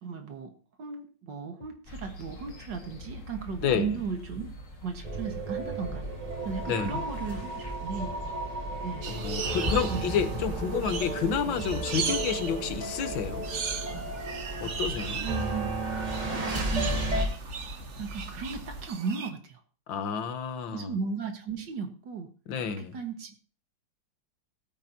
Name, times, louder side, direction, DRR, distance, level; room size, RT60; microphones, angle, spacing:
voice 1, 0.0-0.5 0.8-4.5 4.8-6.0 6.4-8.1 8.8-9.2 9.9-10.1 15.2-15.7 16.3-17.0 18.0-19.6 20.7-22.3 22.8-23.5, right 5 dB, 70° right, 2.1 m, -36 dB
sound 1, 1.8-18.9, equal, 45° left, 2.2 m, -44 dB
voice 2, 3.6-4.0 6.7-7.0 9.1-13.5 14.6-15.3 19.9-20.9 22.5-23.0, left 7 dB, 80° left, 1.8 m, -30 dB
sound 2, 5.0-17.2, right 1 dB, 20° right, 1.7 m, -33 dB
sound 3, 9.0-19.3, right 6 dB, 50° right, 1.0 m, -38 dB
18.0 x 8.7 x 2.8 m
omnidirectional pair, 2.1 m